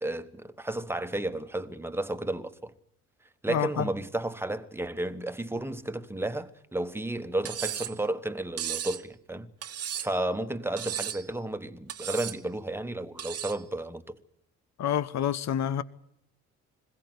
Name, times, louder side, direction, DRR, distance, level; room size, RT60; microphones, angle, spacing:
voice 1, 0.0-2.7 3.4-14.2, right 1 dB, 10° right, 1.3 m, -33 dB
voice 2, 3.5-3.9 14.8-15.8, left 9 dB, 60° left, 1.1 m, -28 dB
Cutlery silverware, 7.4-8.0 8.6-9.0 9.6-10.2 10.8-11.3 11.9-12.4 13.2-13.6, right 10 dB, 55° right, 1.0 m, -35 dB
21.5 x 16.0 x 9.6 m
cardioid pair, 90°, 30 cm